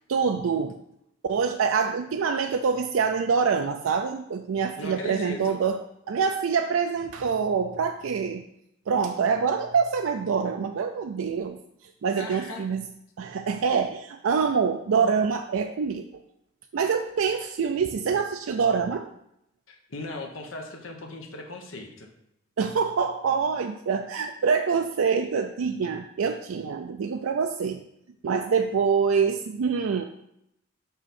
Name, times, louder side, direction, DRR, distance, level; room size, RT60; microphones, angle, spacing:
voice 1, 0.1-0.8 1.2-5.8 6.1-8.5 8.9-11.6 12.0-12.9 13.2-16.0 16.7-19.1 22.6-27.8 28.2-30.0, right 6 dB, 90° right, 5 dB, 0.4 m, -25 dB
voice 2, 4.8-5.6 12.1-12.7 19.7-22.1, left 2 dB, 85° left, 3 dB, 1.0 m, -38 dB
5.7 x 5.6 x 4.2 m, 0.78 s
head